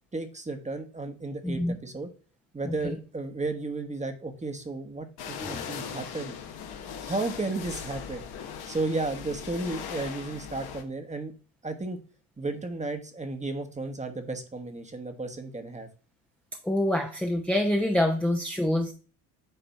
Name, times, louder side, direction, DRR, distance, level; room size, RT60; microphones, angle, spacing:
voice 1, 0.1-2.1 2.5-6.3 7.0-8.2 8.7-11.3 11.6-12.0 12.4-15.9, right 2 dB, 15° right, 6 dB, 1.2 m, -33 dB
voice 2, 1.4-1.8 2.8-2.9 5.4-5.6 16.6-18.9, left 1 dB, 5° left, 2 dB, 0.9 m, -26 dB
sound 1, 5.2-10.8, left 7 dB, 55° left, 1.3 m, -39 dB
9.3 x 3.3 x 4.2 m, 0.38 s
hypercardioid pair, 70°, 44 cm